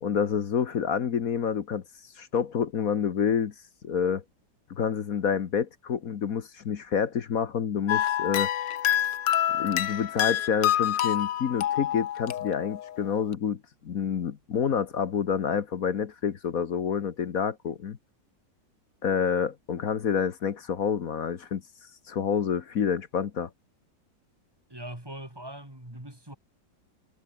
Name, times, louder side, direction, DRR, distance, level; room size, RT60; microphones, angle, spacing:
voice 1, 0.0-1.8 2.2-3.5 3.8-4.2 4.7-8.5 9.6-18.0 19.0-21.6 22.1-23.5, left 7 dB, 55° left, 1.5 m, -28 dB
sound 1, 7.9-13.0, left 11 dB, 75° left, 1.7 m, -27 dB
voice 2, 24.7-26.4, right 1 dB, 10° right, 4.0 m, -41 dB
omnidirectional pair, 2.0 m